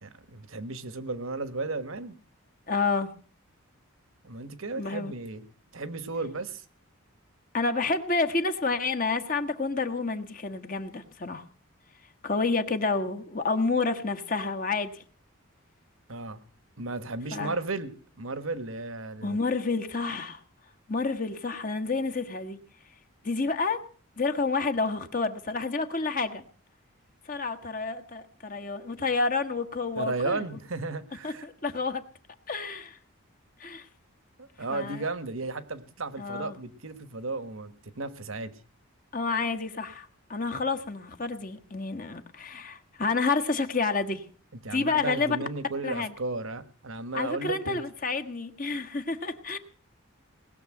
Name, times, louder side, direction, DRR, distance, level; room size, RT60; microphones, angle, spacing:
voice 1, 0.0-2.2 4.2-5.4 5.7-6.6 16.1-16.4 16.8-19.4 30.0-31.5 34.4-38.5 44.5-47.8, right 3 dB, 70° right, 14 dB, 1.3 m, -34 dB
voice 2, 2.7-3.1 4.8-5.1 7.5-11.4 12.2-15.0 17.3-17.6 19.2-20.4 20.9-22.6 23.2-23.8 24.2-26.4 27.2-30.4 31.2-32.0 32.5-33.0 33.6-33.9 34.7-35.0 36.2-36.6 39.1-44.2 44.7-45.4 45.8-46.1 47.1-49.6, left 4 dB, 40° left, 7 dB, 1.2 m, -29 dB
19.5 x 6.9 x 8.9 m, 0.42 s
head